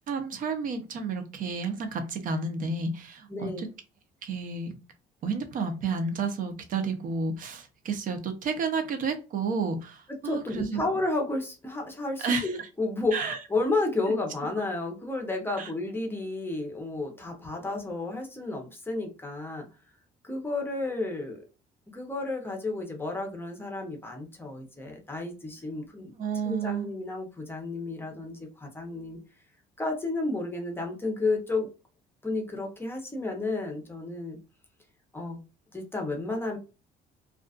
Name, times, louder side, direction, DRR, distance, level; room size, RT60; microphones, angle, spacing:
voice 1, 0.1-3.5 4.2-4.7 5.2-10.8 12.2-12.5 13.1-13.4 15.6-15.7 26.2-27.0, right 4 dB, 55° right, 0.7 m, -31 dB
voice 2, 3.3-3.6 10.2-19.6 20.2-21.4 21.9-26.1 26.4-29.2 29.8-31.7 32.2-34.4 35.1-35.4 35.7-36.6, left 2 dB, 15° left, 0.7 m, -32 dB
2.4 x 2.3 x 2.4 m
cardioid pair, 110°, 17 cm